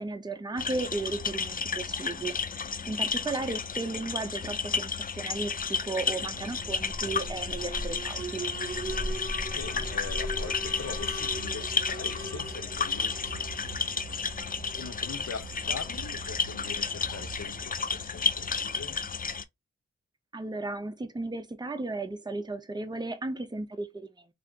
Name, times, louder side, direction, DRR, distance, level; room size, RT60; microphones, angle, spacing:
voice 1, 0.0-2.4 2.9-8.4 20.3-24.3, right 2 dB, 15° right, 0.6 m, -35 dB
sound 1, 0.6-19.4, left 5 dB, 30° left, 0.4 m, -32 dB
Alarm, 6.3-18.3, right 1 dB, 35° right, 0.9 m, -39 dB
voice 2, 9.5-14.0 14.7-19.0, left 5 dB, 65° left, 0.7 m, -42 dB
3.4 x 2.6 x 2.4 m
wide cardioid pair, 55°, 30 cm